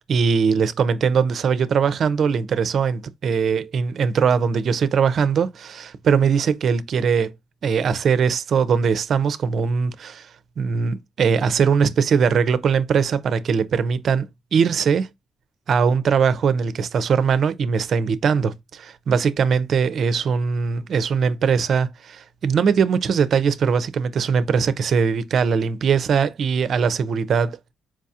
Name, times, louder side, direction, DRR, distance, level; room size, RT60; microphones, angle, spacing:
voice 1, 0.1-7.3 7.6-10.3 10.6-15.1 15.7-27.7, right 6 dB, 60° right, 0.5 m, -21 dB
4.6 x 2.3 x 2.7 m
cardioid pair, 90°, 0 cm